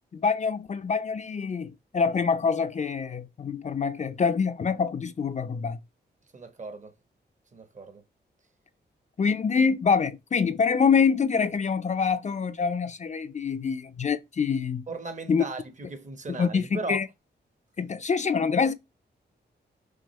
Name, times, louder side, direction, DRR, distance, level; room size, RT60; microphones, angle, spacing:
voice 1, 0.1-5.8 9.2-14.8 15.3-15.4 16.4-17.1 17.8-18.7, left 5 dB, 40° left, 0.5 m, -25 dB
voice 2, 6.3-6.9 7.5-8.0 14.9-17.0, right 3 dB, 40° right, 1.1 m, -37 dB
6.2 x 2.5 x 3.1 m
wide cardioid pair, 95°, 18 cm